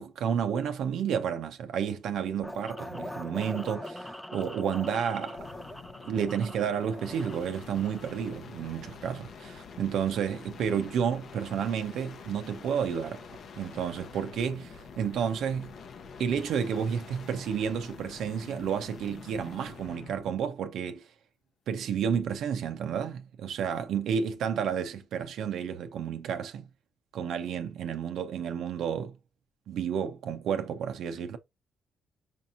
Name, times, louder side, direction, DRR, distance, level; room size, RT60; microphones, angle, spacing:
voice 1, 0.0-5.4 6.0-13.3 13.6-15.7 16.2-21.1 21.7-26.6 27.1-29.1 29.7-31.4, right 7 dB, 75° right, 0.5 m, -31 dB
sound 1, 2.4-8.4, left 1 dB, 5° left, 0.6 m, -42 dB
sound 2, 5.2-20.3 22.1-22.5, left 5 dB, 60° left, 0.7 m, -47 dB
5.1 x 2.8 x 2.4 m
supercardioid pair, 65°, 0 cm